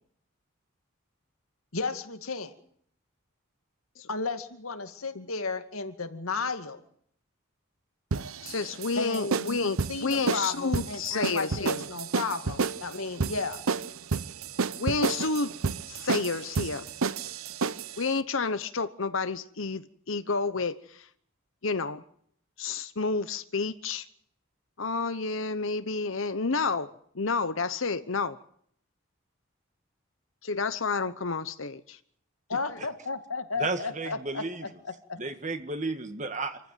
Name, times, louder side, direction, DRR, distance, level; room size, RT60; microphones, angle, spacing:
voice 1, 1.7-2.5 4.1-6.8 8.9-13.6 32.5-35.2, left 4 dB, 80° left, 2.3 m, -34 dB
sound 1, 8.1-18.0, right 4 dB, 80° right, 0.9 m, -31 dB
voice 2, 8.4-11.8 14.8-15.5 15.9-16.9 18.0-21.1 21.6-22.0 22.6-24.0 24.8-28.4 30.4-32.0, left 4 dB, 65° left, 1.0 m, -30 dB
voice 3, 33.6-34.7 35.2-36.6, right 3 dB, 35° right, 1.7 m, -33 dB
27.5 x 15.0 x 9.3 m
head